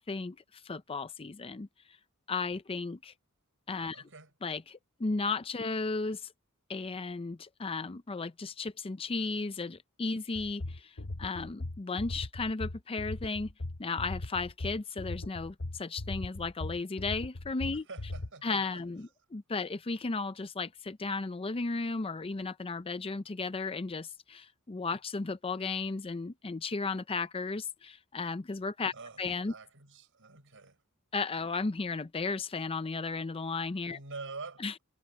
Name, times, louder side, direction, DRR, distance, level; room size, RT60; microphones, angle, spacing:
voice 1, 0.0-2.0 2.3-3.1 3.7-4.1 4.4-6.3 6.7-13.5 13.8-17.9 18.4-29.5 31.1-34.0 34.6-34.7, left 3 dB, 25° left, 0.5 m, -35 dB
voice 2, 3.9-4.3 17.9-18.8 28.9-30.8 33.9-34.8, right 4 dB, 60° right, 7.0 m, -46 dB
sound 1, 10.4-18.3, left 2 dB, 45° left, 0.9 m, -39 dB
head